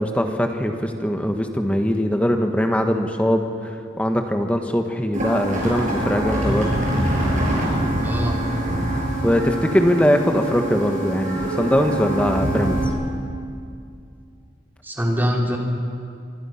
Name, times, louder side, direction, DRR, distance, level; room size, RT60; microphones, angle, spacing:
voice 1, 0.0-6.7 9.2-12.8, equal, 5° left, 5 dB, 1.2 m, -21 dB
sound 1, 5.1-12.8, right 1 dB, 40° right, 6.0 m, -24 dB
voice 2, 8.0-8.4 14.8-15.6, equal, 10° right, 0 dB, 2.6 m, -23 dB
25.0 x 24.0 x 5.8 m, 2.4 s
head